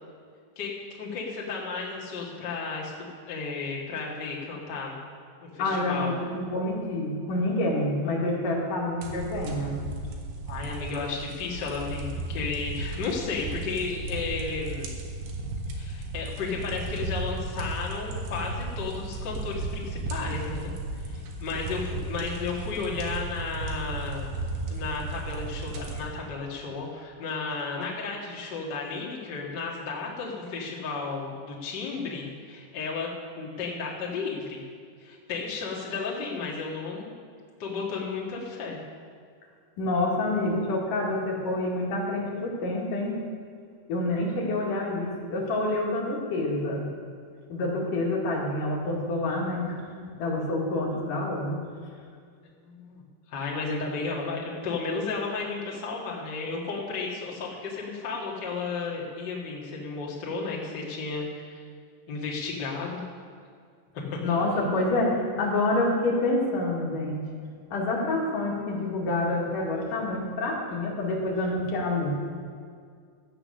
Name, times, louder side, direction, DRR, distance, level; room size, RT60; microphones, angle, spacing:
voice 1, 0.5-5.0 5.4-6.1 10.5-14.9 15.7-20.7 21.0-24.3 24.7-33.1 33.3-34.6 35.0-37.1 37.6-38.8 52.6-53.0 53.3-61.6 62.1-63.0 63.9-64.7, left 4 dB, 85° left, -4 dB, 0.9 m, -33 dB
voice 2, 5.6-9.7 39.8-43.2 43.9-46.8 47.5-49.8 50.2-51.6 64.2-67.2 67.7-72.1, left 2 dB, 55° left, -3 dB, 3.3 m, -27 dB
sound 1, 9.0-26.0, right 2 dB, 70° right, 3.3 m, -35 dB
13.5 x 8.5 x 6.5 m, 2.1 s
omnidirectional pair, 5.2 m